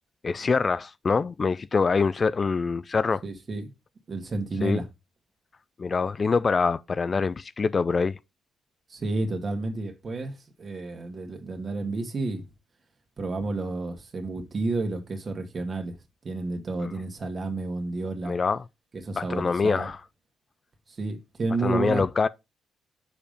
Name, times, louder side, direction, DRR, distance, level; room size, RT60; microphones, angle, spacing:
voice 1, 0.2-3.2 4.6-4.8 5.8-8.2 16.8-16.9 18.2-18.6 19.2-20.0 21.6-22.3, left 4 dB, 35° left, 0.4 m, -25 dB
voice 2, 3.2-3.7 4.1-4.9 8.9-12.5 13.2-16.0 16.2-18.4 18.9-19.9 20.9-22.0, right 3 dB, 40° right, 2.0 m, -31 dB
7.1 x 5.0 x 5.2 m
cardioid pair, 90°, 0 cm